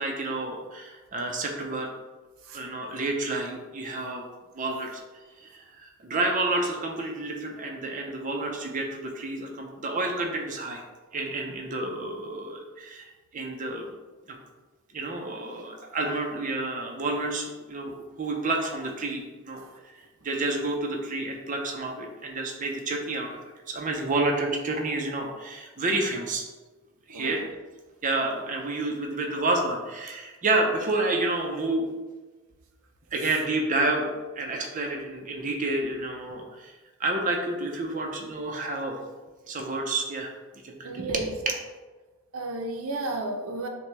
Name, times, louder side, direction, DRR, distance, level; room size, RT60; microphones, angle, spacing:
voice 1, 0.0-1.9 2.5-4.2 4.5-5.0 5.4-10.8 11.1-13.9 14.3-14.4 14.9-19.6 20.2-23.4 23.7-26.4 27.1-27.4 28.0-31.9 33.1-36.7 37.0-39.0 39.5-40.3 40.6-41.3, right 2 dB, 40° right, 2 dB, 0.6 m, -29 dB
voice 2, 27.1-27.4 35.4-35.5 40.8-41.3 42.3-43.7, right 2 dB, 85° right, 3 dB, 0.6 m, -33 dB
6.2 x 2.2 x 3.2 m, 1.3 s
head